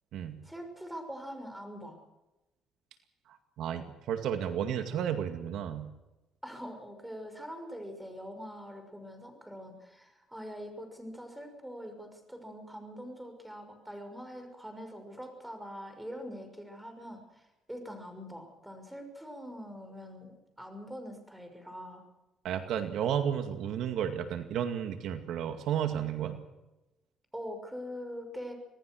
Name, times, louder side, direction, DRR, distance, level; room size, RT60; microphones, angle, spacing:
voice 1, 0.4-2.0 6.4-22.0 27.3-28.5, equal, 5° right, 6 dB, 6.2 m, -43 dB
voice 2, 3.3-5.9 22.4-26.4, right 9 dB, 75° right, 7 dB, 2.1 m, -32 dB
26.0 x 19.0 x 6.4 m, 1.0 s
cardioid pair, 115°, 0 cm